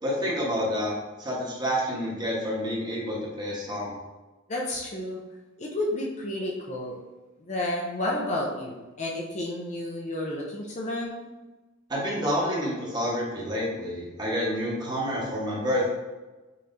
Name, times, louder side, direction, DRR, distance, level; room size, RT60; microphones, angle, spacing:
voice 1, 0.0-0.9 1.2-4.0 11.9-15.9, equal, 20° right, -5 dB, 1.1 m, -28 dB
voice 2, 4.5-5.2 5.6-7.0 7.4-11.2, left 1 dB, 35° left, -2 dB, 0.5 m, -31 dB
5.4 x 3.1 x 2.6 m, 1.2 s
head